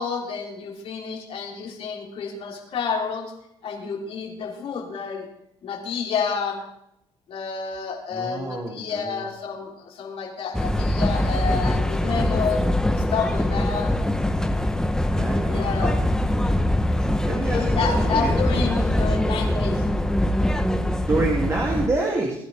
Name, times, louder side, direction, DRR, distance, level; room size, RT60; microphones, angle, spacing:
voice 1, 0.0-3.3 3.6-5.3 5.6-6.6 7.3-12.6 12.9-13.9 15.5-16.0 17.5-19.8, left 5 dB, 60° left, -1 dB, 4.2 m, -29 dB
voice 2, 8.1-9.2 15.1-15.9 17.2-18.3 19.0-19.2 21.0-22.4, right 2 dB, 30° right, -3 dB, 3.3 m, -27 dB
sound 1, 10.5-21.9, left 1 dB, 5° left, 1.2 m, -23 dB
21.5 x 10.5 x 3.7 m, 0.79 s
supercardioid pair, 75°, 11 cm